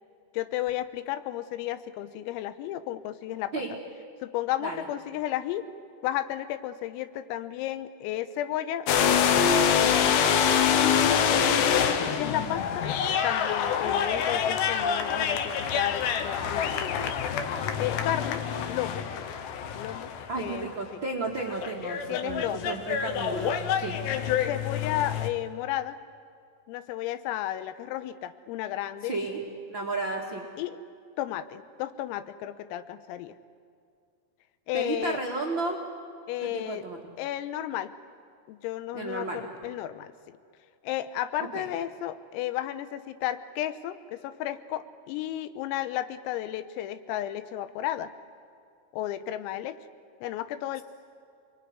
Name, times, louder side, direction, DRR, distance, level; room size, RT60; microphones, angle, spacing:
voice 1, 0.3-3.5 4.2-5.7 6.0-9.6 9.8-10.3 10.8-12.9 13.2-17.1 17.8-18.4 18.7-19.1 19.7-21.0 22.1-22.8 24.5-26.0 26.7-29.2 30.6-30.8 31.2-33.4 34.7-35.2 36.3-36.9 37.2-37.9 38.5-40.4 40.8-48.1 48.9-49.8 50.2-50.8, left 13 dB, 85° left, 12 dB, 3.7 m, -33 dB
sound 1, 8.9-20.7 21.6-25.3, left 7 dB, 70° left, 3.0 m, -26 dB
voice 2, 20.3-24.0 29.1-29.4 29.7-30.5 34.7-35.8 36.4-37.0 38.9-39.4 41.5-41.7, right 3 dB, 75° right, -1 dB, 1.1 m, -33 dB
27.5 x 21.5 x 9.6 m, 2.4 s
omnidirectional pair, 6.0 m